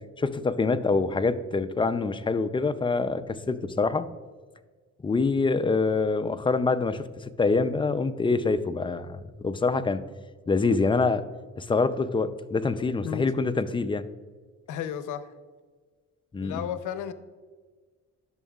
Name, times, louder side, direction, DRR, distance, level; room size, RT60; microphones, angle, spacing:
voice 1, 0.2-4.1 5.0-7.0 7.4-10.0 10.5-11.2 11.6-14.1 16.3-16.7, left 4 dB, 15° left, 11 dB, 0.4 m, -25 dB
voice 2, 14.7-15.3 16.4-17.1, left 9 dB, 80° left, 12 dB, 0.6 m, -33 dB
11.0 x 6.3 x 2.3 m, 1.4 s
cardioid pair, 90°, 30 cm